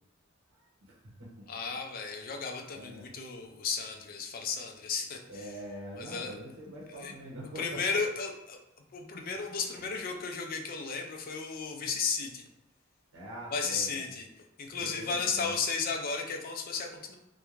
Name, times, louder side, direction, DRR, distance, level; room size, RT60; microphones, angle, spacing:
voice 1, 0.8-1.4 2.7-3.1 5.3-8.0 9.3-9.4 9.7-9.9 13.1-14.1 14.8-15.5, right 1 dB, 70° right, -4 dB, 0.7 m, -44 dB
voice 2, 1.5-5.5 6.0-6.3 6.9-7.1 7.6-8.6 8.9-12.5 13.5-14.3 14.6-17.2, left 5 dB, 45° left, 3 dB, 0.4 m, -34 dB
2.4 x 2.1 x 3.0 m, 0.91 s
head